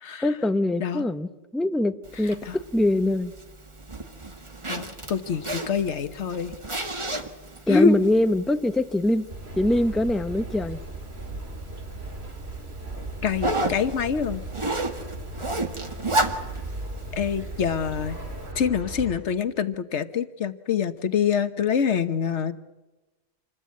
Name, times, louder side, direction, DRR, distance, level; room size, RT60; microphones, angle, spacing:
voice 1, 0.2-3.3 7.7-9.3 9.6-10.8, left 1 dB, ahead, 10 dB, 0.6 m, -23 dB
Zipper (clothing), 2.0-18.5, right 2 dB, 25° right, 1.7 m, -34 dB
voice 2, 4.7-6.5 7.7-8.0 13.2-14.4 17.1-18.2 18.5-22.5, left 6 dB, 85° left, 11 dB, 1.4 m, -25 dB
sound 1, 9.3-19.2, right 2 dB, 65° right, 3.3 m, -37 dB
27.5 x 20.5 x 8.4 m, 1.1 s
omnidirectional pair, 1.2 m